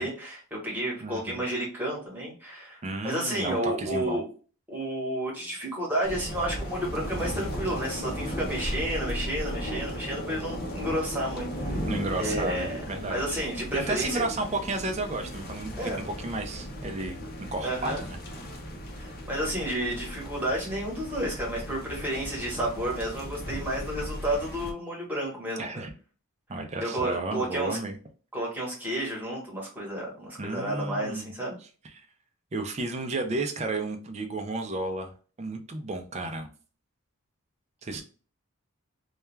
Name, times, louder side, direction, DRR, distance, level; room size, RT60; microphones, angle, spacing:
voice 1, 0.0-4.3 4.7-11.9 12.2-12.8 13.1-14.2 15.8-16.0 17.6-18.0 19.0-25.9 26.8-27.8 28.3-31.6, right 1 dB, 10° right, -4 dB, 1.0 m, -31 dB
voice 2, 1.0-1.4 2.8-4.2 11.9-13.2 13.7-17.2 17.5-18.2 25.6-25.9 26.5-28.0 30.4-31.3 31.9-32.0 32.5-35.1 35.4-36.5 37.8-38.0, right 2 dB, 30° right, 5 dB, 0.4 m, -32 dB
sound 1, 6.0-24.7, equal, 45° left, 0.5 m, -36 dB
2.3 x 2.2 x 3.1 m, 0.38 s
head